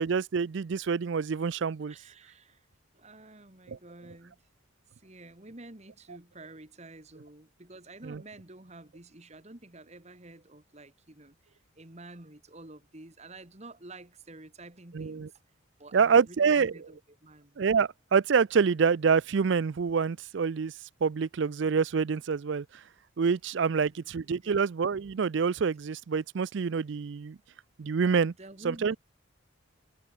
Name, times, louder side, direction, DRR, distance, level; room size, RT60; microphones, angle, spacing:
voice 1, 0.0-1.9 3.7-3.8 8.0-8.2 14.9-15.3 15.9-16.7 17.6-20.7 21.0-22.7 23.2-27.4 27.8-28.3 28.6-29.0, right 5 dB, 60° right, 0.4 m, -26 dB
voice 2, 1.9-2.7 2.9-4.5 4.9-15.4 15.8-17.6 23.7-24.6 28.2-29.0, right 2 dB, 30° right, 1.8 m, -50 dB
head